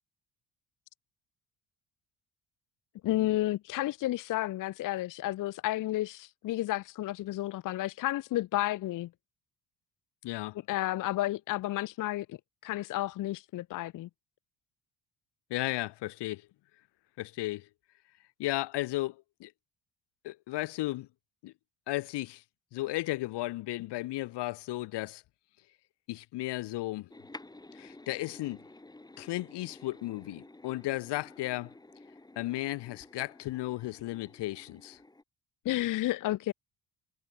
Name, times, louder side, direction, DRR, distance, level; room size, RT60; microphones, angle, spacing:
voice 1, 3.0-9.1 10.7-12.4 12.6-14.1 35.6-36.5, left 15 dB, 50° left, 0.6 m, -31 dB
voice 2, 10.2-10.6 15.5-16.4 17.2-17.7 18.4-19.5 20.2-21.1 21.4-21.5 21.9-22.4 22.7-25.2 26.1-27.1 27.7-28.6 29.2-31.7 32.4-35.0, left 18 dB, 85° left, 1.8 m, -34 dB
sound 1, 27.1-35.2, left 2 dB, 10° left, 6.4 m, -52 dB
cardioid pair, 150°, 40 cm